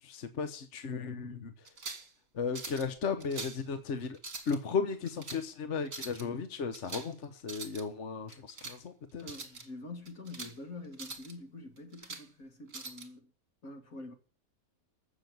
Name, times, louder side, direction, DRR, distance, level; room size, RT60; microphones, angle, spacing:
voice 1, 0.0-1.7 2.3-4.2 4.5-9.2, left 5 dB, 60° left, 1.3 m, -35 dB
sound 1, 1.6-2.1 2.5-2.9 3.2-3.6 4.1-4.6 5.1-5.4 5.9-6.2 6.7-7.1 7.4-7.8 8.3-8.8 9.2-9.6 10.1-10.5 10.9-11.3 11.8-12.3 12.7-13.1, right 3 dB, 65° right, 2.6 m, -43 dB
voice 2, 9.2-13.3 13.6-14.1, left 2 dB, 80° left, 3.0 m, -46 dB
15.0 x 6.4 x 9.4 m
omnidirectional pair, 1.5 m